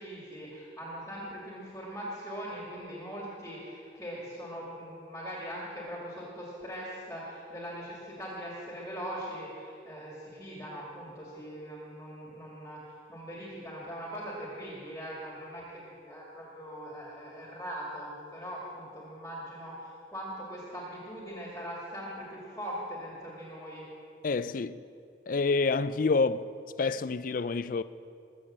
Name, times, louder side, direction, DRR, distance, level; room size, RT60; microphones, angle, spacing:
voice 1, 0.0-12.8 13.1-23.8, equal, 10° left, 2.3 m, -41 dB
voice 2, 24.2-24.8 25.3-26.5 26.8-27.8, left 4 dB, 45° left, 0.4 m, -28 dB
21.0 x 7.7 x 7.4 m
head